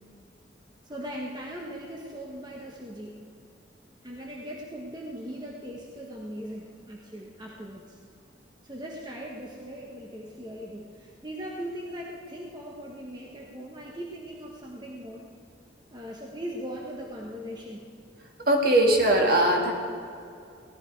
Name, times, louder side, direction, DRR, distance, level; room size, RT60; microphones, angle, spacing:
voice 1, 0.8-3.2 4.0-8.0 8.6-15.3 15.9-17.9, equal, 20° right, -2 dB, 1.3 m, -39 dB
voice 2, 18.5-19.7, right 1 dB, 50° right, 0 dB, 2.2 m, -20 dB
18.0 x 12.0 x 4.7 m, 2.5 s
head